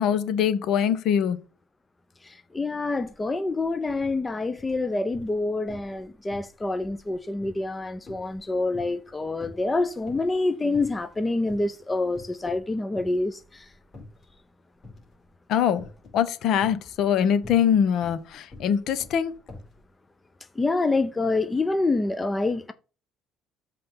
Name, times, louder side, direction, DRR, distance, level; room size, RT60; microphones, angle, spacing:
voice 1, 0.0-1.4 15.5-15.9 16.1-19.3, left 8 dB, 60° left, 1.0 m, -23 dB
voice 2, 2.5-13.6 20.6-22.7, left 2 dB, 15° left, 0.6 m, -27 dB
sound 1, 3.0-3.2 3.5-4.2 4.6-5.4 5.7-6.0 6.3-9.1 9.4-10.4 10.7-11.2 11.5-11.7 12.1-12.7 12.9-14.3 14.8-15.2 15.8-16.2 16.6-19.8, left 2 dB, 35° left, 4.8 m, -46 dB
7.7 x 4.2 x 5.4 m
cardioid pair, 120°, 0 cm